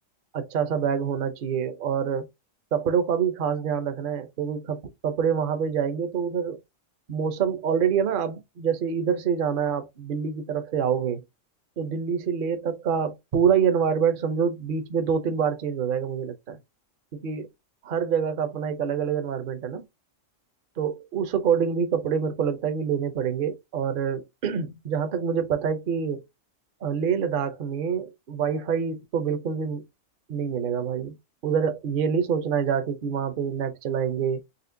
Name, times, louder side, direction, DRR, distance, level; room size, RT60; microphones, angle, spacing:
voice 1, 0.3-2.3 2.7-6.6 7.1-11.2 11.8-16.6 17.1-17.5 17.8-19.8 20.8-26.2 26.8-29.8 30.3-31.2 31.4-34.4, right 7 dB, 50° right, 0.8 m, -26 dB
4.2 x 3.2 x 2.6 m
omnidirectional pair, 1.4 m